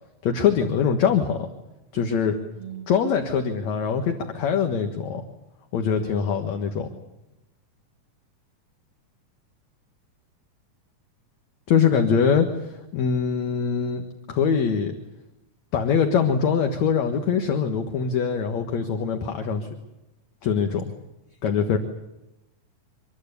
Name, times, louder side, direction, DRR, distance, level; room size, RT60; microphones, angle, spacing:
voice 1, 0.2-1.5 1.9-2.4 2.9-5.2 5.7-6.9 11.7-14.0 14.3-14.9 15.7-19.7 20.4-20.9 21.4-21.8, left 6 dB, 60° left, 5 dB, 2.5 m, -23 dB
voice 2, 2.5-3.1 21.4-21.6, right 6 dB, 20° right, 0 dB, 2.7 m, -40 dB
25.5 x 21.0 x 8.4 m, 0.95 s
omnidirectional pair, 3.8 m